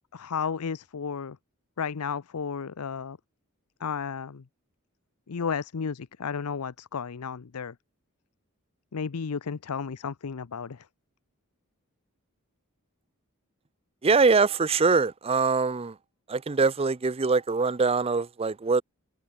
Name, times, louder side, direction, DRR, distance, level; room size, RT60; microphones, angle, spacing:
voice 1, 0.1-1.4 1.8-3.2 3.8-4.4 5.3-7.7 8.9-10.8, left 6 dB, 90° left, 0.6 m, -33 dB
voice 2, 14.0-16.0 16.3-18.8, right 4 dB, 25° right, 0.5 m, -23 dB
head